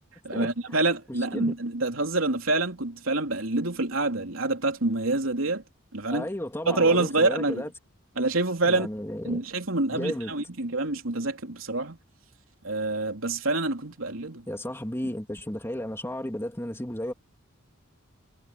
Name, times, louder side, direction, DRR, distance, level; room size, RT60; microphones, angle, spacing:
voice 1, 0.2-5.6 5.9-6.3 6.7-7.6 8.2-8.9 9.2-12.0 12.6-14.4, right 2 dB, 80° right, 3.3 m, -26 dB
voice 2, 6.1-7.7 8.6-9.4 9.9-10.3 14.5-17.1, left 1 dB, 10° left, 2.7 m, -33 dB
head